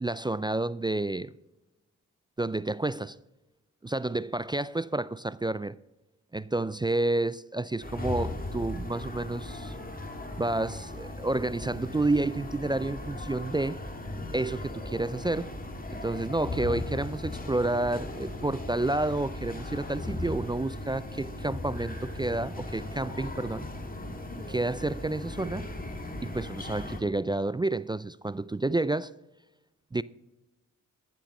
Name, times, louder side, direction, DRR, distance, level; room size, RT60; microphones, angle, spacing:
voice 1, 0.0-1.3 2.4-3.2 3.8-5.8 6.3-9.7 10.4-13.8 14.3-15.5 15.9-23.7 24.5-25.7 26.2-29.1 29.9-30.0, right 2 dB, 15° right, 0.3 m, -30 dB
sound 1, 7.8-27.0, left 2 dB, 25° left, 2.1 m, -37 dB
14.5 x 7.6 x 5.4 m
cardioid pair, 50°, 32 cm